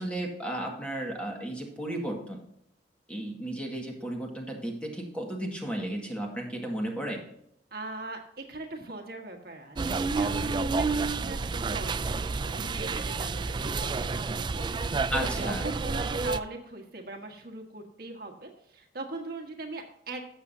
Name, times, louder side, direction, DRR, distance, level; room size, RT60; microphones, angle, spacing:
voice 1, 0.0-2.4 3.1-7.2 15.1-15.7, right 1 dB, 5° left, 0 dB, 1.8 m, -34 dB
voice 2, 7.7-20.2, right 2 dB, 55° right, 3 dB, 1.5 m, -40 dB
sound 1, 9.8-16.4, right 4 dB, 25° right, 0.3 m, -30 dB
13.0 x 7.4 x 2.7 m, 0.74 s
head